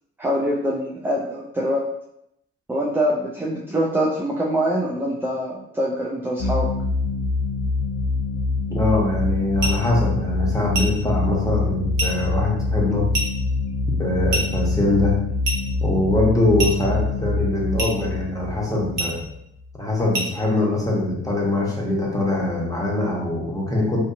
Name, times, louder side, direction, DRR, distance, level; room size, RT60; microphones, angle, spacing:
voice 1, 0.2-1.8 2.7-6.7, equal, 5° right, -3 dB, 0.4 m, -24 dB
sound 1, 6.4-19.7, left 3 dB, 65° left, 0.6 m, -25 dB
voice 2, 8.7-13.0 14.0-15.1 15.8-19.2 19.8-24.0, left 2 dB, 10° left, -4 dB, 1.0 m, -22 dB
sound 2, 9.6-9.9 10.7-11.0 12.0-12.2 13.1-13.4 14.3-14.6 15.4-15.7 16.6-16.9 17.8-18.0 19.0-19.2 20.1-20.4, right 2 dB, 60° right, 0.8 m, -26 dB
2.5 x 2.3 x 2.5 m, 0.76 s
hypercardioid pair, 40°, 36 cm